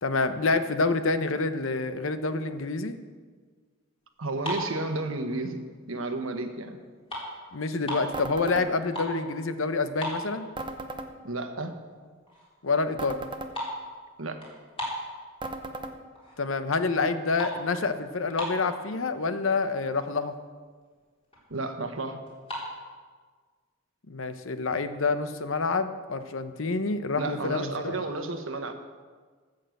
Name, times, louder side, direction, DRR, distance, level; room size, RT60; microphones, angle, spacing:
voice 1, 0.0-3.0 7.5-10.5 12.6-13.2 16.4-20.3 24.1-28.0, left 3 dB, 70° left, 10 dB, 0.8 m, -27 dB
voice 2, 4.2-6.8 11.2-11.7 14.2-14.4 21.5-22.2 27.2-28.7, right 2 dB, 75° right, 7 dB, 1.2 m, -32 dB
Cutting Almonds with Knife, 4.3-5.7 6.2-6.4 6.7-8.2 8.6-9.3 9.5-9.6 9.9-10.8 11.2-11.3 11.9-12.0 12.3-12.6 12.9-15.7 16.2-16.6 16.9-18.9 19.5-19.6 19.8-20.1 20.5-20.6 20.8-21.5 22.3-22.7, equal, 25° left, 3.5 m, -36 dB
sound 1, 8.1-8.7 10.6-11.1 13.0-13.5 15.4-15.9, right 2 dB, 25° right, 0.7 m, -36 dB
13.5 x 6.6 x 7.8 m, 1.5 s
head